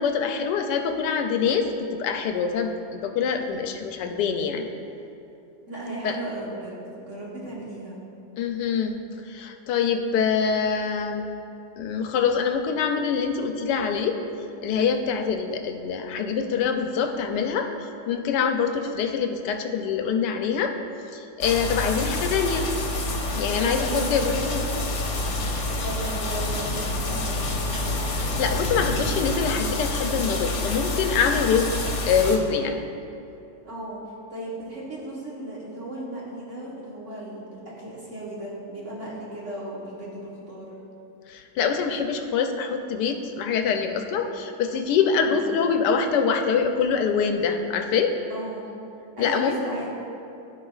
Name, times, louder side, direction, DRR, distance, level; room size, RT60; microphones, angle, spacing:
voice 1, 0.0-4.6 6.0-6.2 8.4-8.9 9.3-11.3 11.8-14.2 14.6-20.7 21.1-22.7 23.4-24.6 28.1-31.7 32.1-32.8 41.3-48.1 49.2-49.6, left 6 dB, 90° left, 6 dB, 1.2 m, -25 dB
voice 2, 5.7-8.0 23.5-24.7 25.8-27.5 33.6-34.0 34.3-40.7 45.2-45.6 48.3-48.7 49.2-49.9, right 1 dB, 50° right, -6 dB, 1.4 m, -35 dB
sound 1, 21.4-32.4, left 2 dB, 55° left, 1.1 m, -28 dB
14.0 x 5.0 x 2.4 m, 2.8 s
omnidirectional pair, 1.8 m